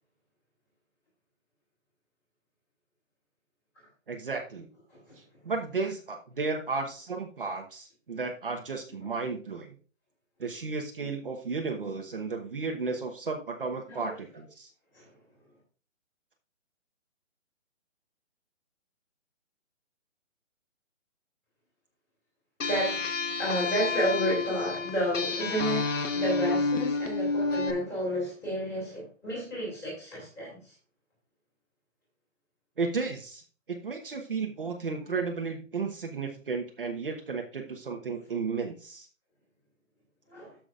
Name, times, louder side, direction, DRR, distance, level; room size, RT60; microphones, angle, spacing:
voice 1, 4.1-4.7 5.2-9.7 10.4-14.7 32.8-33.4 33.7-39.1, right 4 dB, 45° right, 1.1 m, -33 dB
voice 2, 13.9-14.2 14.9-15.1 22.7-23.0 23.4-30.7 40.3-40.6, equal, 5° left, 2.7 m, -31 dB
sound 1, 22.6-27.7, left 3 dB, 70° left, 1.3 m, -30 dB
13.5 x 6.0 x 2.4 m
hypercardioid pair, 175°, 39 cm